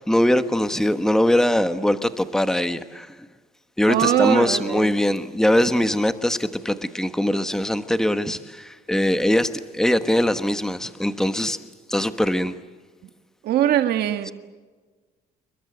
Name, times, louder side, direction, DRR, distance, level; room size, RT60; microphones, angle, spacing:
voice 1, 0.0-3.1 3.8-11.6 11.9-12.6, left 1 dB, 5° left, 9 dB, 1.3 m, -22 dB
voice 2, 3.9-4.9 13.4-14.3, right 11 dB, 70° right, 8 dB, 1.6 m, -21 dB
29.0 x 22.5 x 8.0 m, 1.4 s
cardioid pair, 110°, 17 cm